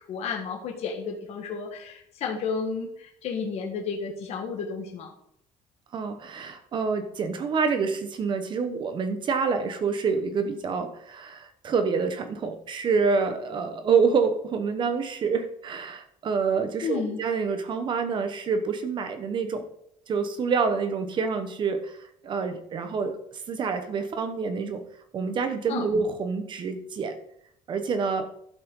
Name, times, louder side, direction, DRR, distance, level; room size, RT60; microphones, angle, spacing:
voice 1, 0.0-5.1 16.8-17.2 25.7-25.9, left 5 dB, 50° left, 1 dB, 1.7 m, -32 dB
voice 2, 5.9-19.6 20.1-22.0 22.2-24.8 25.1-27.1 27.7-28.3, right 5 dB, 35° right, 8 dB, 1.2 m, -27 dB
11.5 x 7.6 x 3.9 m, 0.70 s
cardioid pair, 170°, 14 cm